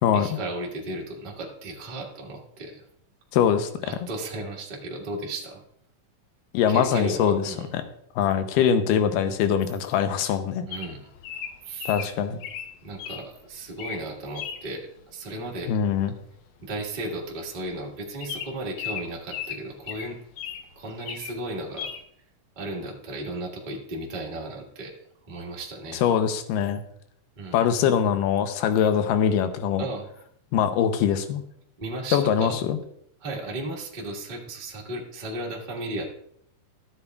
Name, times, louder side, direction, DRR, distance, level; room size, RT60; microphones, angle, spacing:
voice 1, 0.1-2.8 3.8-5.6 6.7-7.7 10.7-11.1 11.6-11.9 12.8-15.7 16.6-20.2 20.7-21.9 22.5-24.9 25.3-26.0 27.4-27.6 29.8-30.0 31.8-32.6 33.2-36.1, right 1 dB, 80° right, -2 dB, 0.4 m, -35 dB
voice 2, 3.3-3.7 6.5-7.8 8.2-10.7 11.9-12.4 15.7-16.1 25.9-26.8 27.5-29.8 30.5-31.4 32.1-32.8, left 8 dB, 90° left, 9 dB, 2.3 m, -23 dB
Bird vocalization bird call bird song, 10.7-13.2 13.7-14.0 14.4-14.6 16.1-16.4 16.6-16.7 17.0-17.2 17.6-17.7 18.2-20.7 21.0-21.4 21.8-22.0, left 8 dB, 70° left, 2.0 m, -36 dB
14.0 x 8.3 x 2.3 m, 0.70 s
omnidirectional pair, 3.8 m